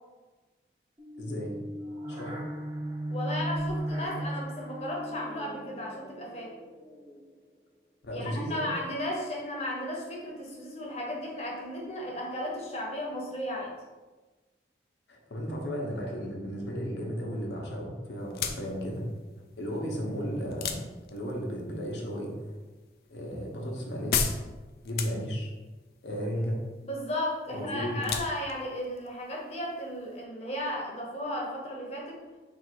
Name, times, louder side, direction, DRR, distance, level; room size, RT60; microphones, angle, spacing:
sound 1, 1.0-7.4, right 1 dB, 25° right, 0.8 m, -37 dB
voice 1, 1.2-1.6 2.1-2.4 8.0-8.7 15.1-19.1 19.6-20.8 21.1-22.6 23.1-24.3 24.8-25.5 26.0-26.6 27.5-28.1, equal, 90° left, -1 dB, 0.9 m, -34 dB
voice 2, 3.1-6.5 8.1-13.7 26.8-32.2, left 1 dB, 35° left, -2 dB, 0.9 m, -35 dB
sound 2, 18.2-30.2, left 7 dB, 55° left, 0.3 m, -38 dB
3.7 x 2.5 x 4.5 m, 1.2 s
head